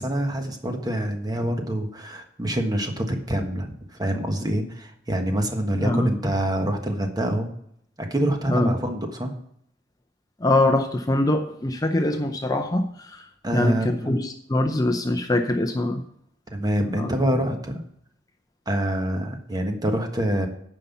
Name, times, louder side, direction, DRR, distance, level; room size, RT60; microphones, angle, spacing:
voice 1, 0.0-7.5 8.0-9.3 13.4-14.1 16.5-17.8 18.7-20.5, right 1 dB, 20° right, 4 dB, 1.3 m, -26 dB
voice 2, 10.4-13.3 13.5-16.0 16.9-17.1, left 1 dB, 20° left, 5 dB, 0.6 m, -23 dB
9.5 x 5.7 x 7.0 m, 0.71 s
head